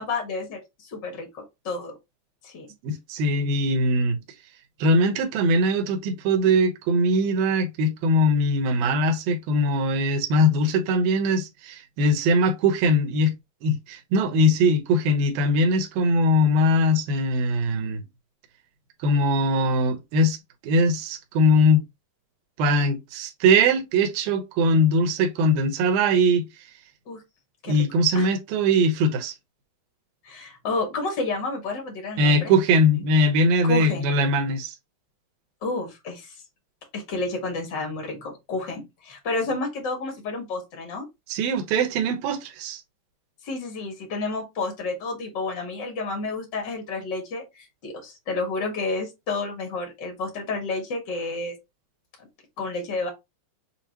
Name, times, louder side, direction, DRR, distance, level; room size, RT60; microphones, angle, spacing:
voice 1, 0.0-1.9 2.4-2.7 27.1-27.2 27.6-27.8 28.1-28.2 30.2-32.5 33.7-34.1 35.6-36.3 36.9-41.0 43.4-51.5 52.2-52.3 52.6-53.1, left 3 dB, 90° left, 0.9 m, -30 dB
voice 2, 2.8-4.2 4.8-13.3 13.6-18.0 19.0-20.4 20.6-21.8 22.6-26.5 27.7-29.3 32.2-34.7 41.3-42.8, equal, 70° right, 2.4 m, -21 dB
7.2 x 2.4 x 2.9 m
omnidirectional pair, 4.9 m